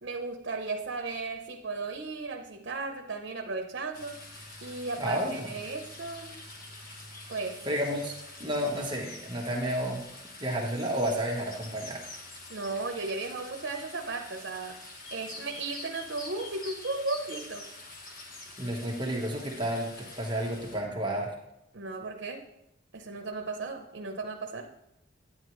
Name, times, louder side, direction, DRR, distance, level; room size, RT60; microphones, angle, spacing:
voice 1, 0.0-4.2 4.6-6.4 7.3-7.6 12.5-17.7 21.7-22.5 22.9-24.7, right 3 dB, 80° right, 3 dB, 0.7 m, -35 dB
sound 1, 3.9-20.8, left 2 dB, 50° left, 1.4 m, -46 dB
voice 2, 5.0-5.5 7.6-10.0 10.4-12.0 18.6-21.3, equal, 25° right, -1 dB, 1.2 m, -31 dB
9.7 x 9.5 x 3.1 m, 0.86 s
head